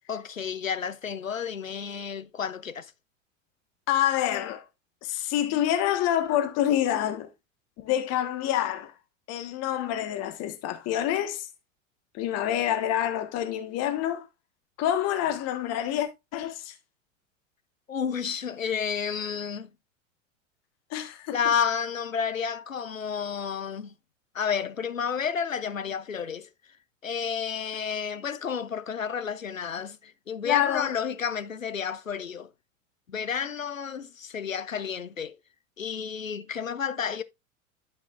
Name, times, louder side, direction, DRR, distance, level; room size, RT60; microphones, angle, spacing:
voice 1, 0.1-2.9 17.9-19.7 21.3-23.9 24.3-26.5 27.0-32.5 33.1-35.4 35.8-37.2, left 7 dB, 90° left, 0.8 m, -31 dB
voice 2, 3.9-4.6 5.0-7.3 7.8-8.9 9.3-11.5 12.1-14.3 14.8-16.7 20.9-21.4 30.4-30.9, left 11 dB, 40° left, 1.5 m, -27 dB
12.5 x 5.7 x 2.5 m
figure-of-eight pair, 90°, 39 cm